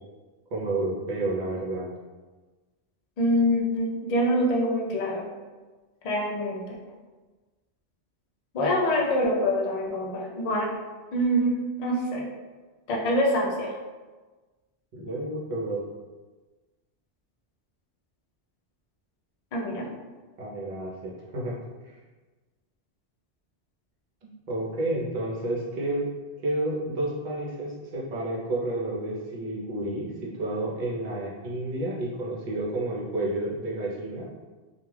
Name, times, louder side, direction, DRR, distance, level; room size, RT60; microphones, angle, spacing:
voice 1, 0.5-1.9 15.0-15.8 20.4-21.5 21.8-21.9 24.5-26.0 26.4-34.3, right 2 dB, 50° right, -4 dB, 0.7 m, -30 dB
voice 2, 3.2-5.3 6.0-6.7 8.5-10.7 11.1-12.2 12.9-13.7 19.5-19.8, equal, 55° left, -2 dB, 0.4 m, -25 dB
2.3 x 2.2 x 3.2 m, 1.3 s
omnidirectional pair, 1.2 m